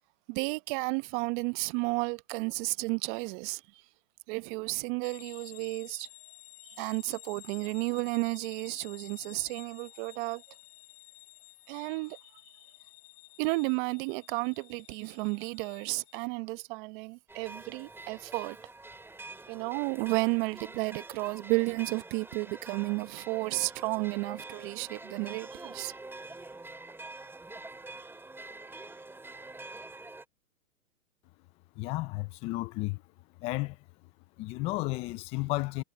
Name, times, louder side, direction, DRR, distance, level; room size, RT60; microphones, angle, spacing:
voice 1, 0.3-3.8 4.3-6.1 6.6-10.4 11.7-12.2 13.4-18.6 19.5-25.9, right 28 dB, 35° right, 1.2 m, -32 dB
sound 1, 5.0-16.3, left 22 dB, 45° left, 4.8 m, -53 dB
sound 2, 17.3-30.2, right 2 dB, 5° right, 4.5 m, -46 dB
voice 2, 31.8-33.0 33.4-33.8 34.4-35.8, left 20 dB, 15° left, 0.4 m, -32 dB
hypercardioid pair, 130°, 43 cm